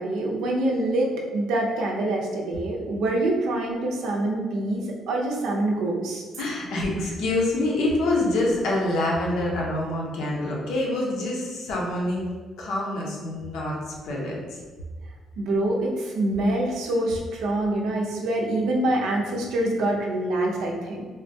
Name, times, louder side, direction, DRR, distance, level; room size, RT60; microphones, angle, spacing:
voice 1, 0.0-6.2 15.4-21.0, right 1 dB, 80° right, -1 dB, 0.5 m, -25 dB
voice 2, 6.4-12.2 12.6-13.8 14.0-14.6, left 1 dB, 75° left, -3 dB, 0.7 m, -26 dB
3.5 x 2.2 x 2.6 m, 1.4 s
cardioid pair, 180°, 0 cm